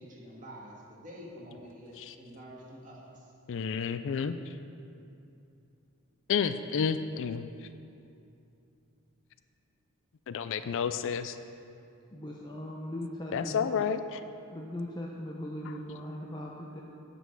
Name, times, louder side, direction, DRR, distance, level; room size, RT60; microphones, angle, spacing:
voice 1, 0.0-3.3, equal, 35° right, -5 dB, 2.1 m, -48 dB
voice 2, 3.5-4.3 6.3-7.5 10.3-11.4 13.3-14.2, left 6 dB, 60° left, 11 dB, 0.4 m, -30 dB
voice 3, 12.1-13.6 14.5-16.8, left 1 dB, 20° left, -2 dB, 0.7 m, -39 dB
9.3 x 5.3 x 8.0 m, 2.7 s
head